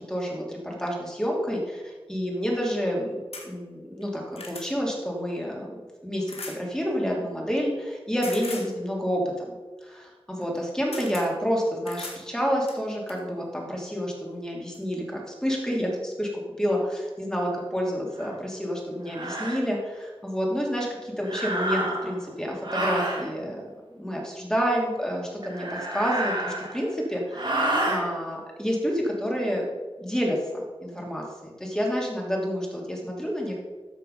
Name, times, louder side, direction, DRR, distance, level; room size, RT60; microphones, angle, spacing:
voice 1, 0.0-5.7 6.0-9.6 9.8-23.6 23.9-29.6 30.0-33.6, equal, 5° left, -2 dB, 2.8 m, -29 dB
sound 1, 3.3-3.5 4.0-4.7 6.3-6.6 8.2-8.7 10.4-10.6 10.9-11.3 11.9-12.2 12.7-13.2 14.2-14.4 14.7-14.8, left 3 dB, 80° left, 1.7 m, -39 dB
sound 2, 18.2-18.3 19.1-19.6 21.2-22.2 22.6-23.3 25.4-26.9 27.3-28.0, right 1 dB, 50° right, 2.3 m, -29 dB
13.5 x 4.6 x 5.3 m, 1.3 s
wide cardioid pair, 55°, 10 cm